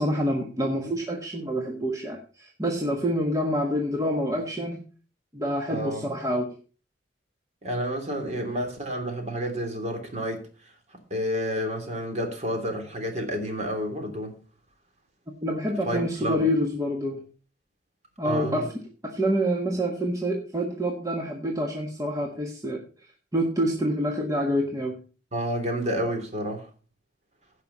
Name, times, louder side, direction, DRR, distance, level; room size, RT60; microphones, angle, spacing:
voice 1, 0.0-4.8 5.3-6.5 15.4-17.2 18.2-18.7 19.0-22.8 23.3-25.0, equal, 20° right, 1.5 m, -27 dB
voice 2, 5.7-6.1 7.6-10.5 11.1-14.4 15.8-16.4 18.2-18.6 25.3-26.7, equal, 40° right, 3.3 m, -30 dB
16.0 x 5.8 x 5.5 m
head